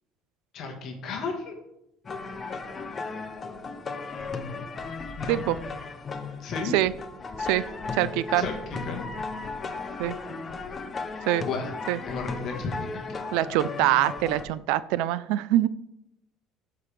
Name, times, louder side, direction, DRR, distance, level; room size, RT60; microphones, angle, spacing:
voice 1, 0.5-1.5 4.1-4.3 5.2-5.4 6.4-6.8 8.4-9.0 11.4-11.7 12.0-13.2, left 4 dB, 45° left, 1 dB, 1.4 m, -34 dB
sound 1, 2.0-14.4, left 4 dB, 25° left, 0.6 m, -35 dB
voice 2, 7.9-8.5 10.0-10.2 11.2-11.5 11.9-12.0 13.3-15.7, right 14 dB, 75° right, 17 dB, 0.4 m, -24 dB
13.0 x 4.9 x 3.4 m, 0.86 s
cardioid pair, 150°, 0 cm